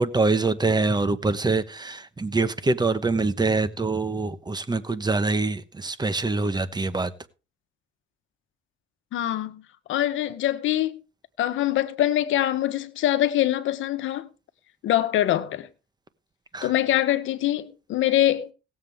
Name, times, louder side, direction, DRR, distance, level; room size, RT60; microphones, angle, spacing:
voice 1, 0.0-7.1 16.5-16.7, right 3 dB, 20° right, 1.1 m, -24 dB
voice 2, 9.1-9.6 9.9-11.0 11.4-14.3 14.8-15.7 16.6-18.5, left 13 dB, 80° left, 1.1 m, -24 dB
18.0 x 7.5 x 3.5 m
cardioid pair, 90°, 20 cm